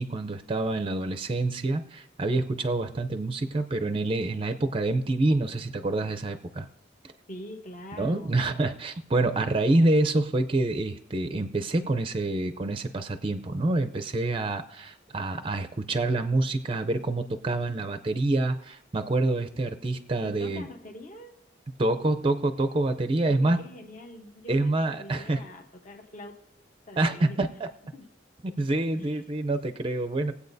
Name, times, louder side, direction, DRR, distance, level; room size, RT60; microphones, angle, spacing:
voice 1, 0.0-6.7 7.9-20.6 21.8-23.6 24.5-25.4 27.0-27.7 28.4-30.3, right 2 dB, 30° right, 8 dB, 0.5 m, -27 dB
voice 2, 7.3-8.6 20.2-21.4 23.2-26.4 26.8-27.4 27.9-28.1 28.9-29.2, left 1 dB, 40° left, 2 dB, 1.0 m, -44 dB
21.0 x 8.2 x 2.7 m, 0.77 s
head